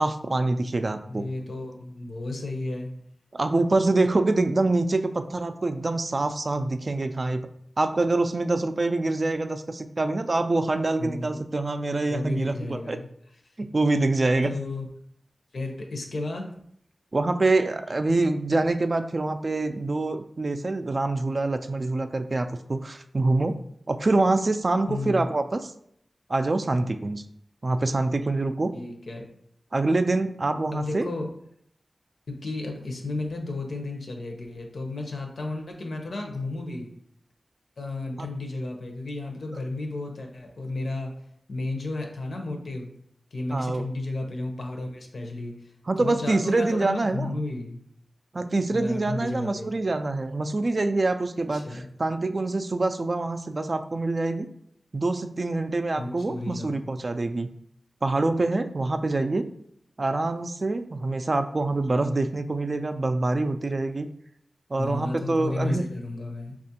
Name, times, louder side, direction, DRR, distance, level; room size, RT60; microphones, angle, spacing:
voice 1, 0.0-1.3 3.3-7.4 7.8-13.0 13.6-14.5 17.1-23.6 23.9-25.7 26.3-27.2 27.6-28.7 29.7-31.1 38.2-38.3 43.5-43.8 45.9-47.4 48.3-54.5 54.9-57.5 58.0-59.5 60.0-64.1 64.7-65.8, right 2 dB, 50° right, 8 dB, 0.3 m, -25 dB
voice 2, 1.1-2.9 11.0-11.4 12.1-13.1 14.4-14.9 15.5-16.5 24.9-25.3 28.7-29.3 30.7-31.3 32.3-36.9 37.8-41.1 41.5-42.9 43.3-45.5 46.0-47.8 48.7-49.7 51.5-51.9 56.0-56.9 64.8-66.6, left 2 dB, 80° left, 2 dB, 0.7 m, -33 dB
4.3 x 2.4 x 2.7 m, 0.69 s
cardioid pair, 55°, 0 cm